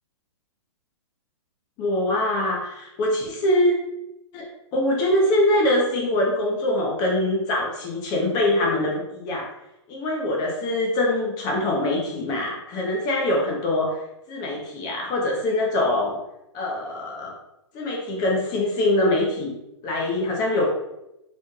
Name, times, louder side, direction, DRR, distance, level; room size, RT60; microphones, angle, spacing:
voice 1, 1.8-3.7 4.3-4.5 4.7-9.5 9.9-14.0 14.3-16.2 16.5-17.3 17.7-19.6 19.8-20.7, left 1 dB, 25° left, -1 dB, 0.7 m, -23 dB
4.1 x 3.1 x 2.3 m, 0.88 s
hypercardioid pair, 145°, 16 cm